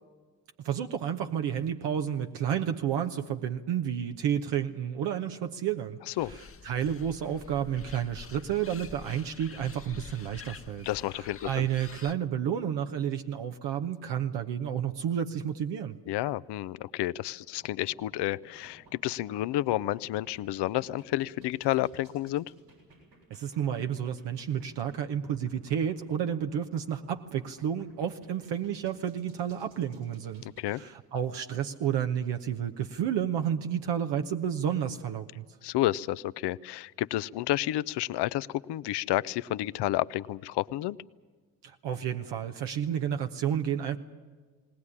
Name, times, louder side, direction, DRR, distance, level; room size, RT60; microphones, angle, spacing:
voice 1, 0.6-6.4 6.6-16.0 23.3-35.4 41.6-44.0, right 9 dB, 70° right, 5 dB, 1.0 m, -31 dB
sound 1, 6.2-12.1, left 5 dB, 30° left, 0.9 m, -47 dB
voice 2, 10.8-11.7 16.1-22.5 30.4-30.8 35.6-41.0, left 15 dB, 65° left, 18 dB, 0.6 m, -30 dB
sound 2, 17.4-30.8, right 2 dB, 90° right, 7.2 m, -58 dB
19.5 x 18.5 x 9.8 m, 1.5 s
hypercardioid pair, 45°, 44 cm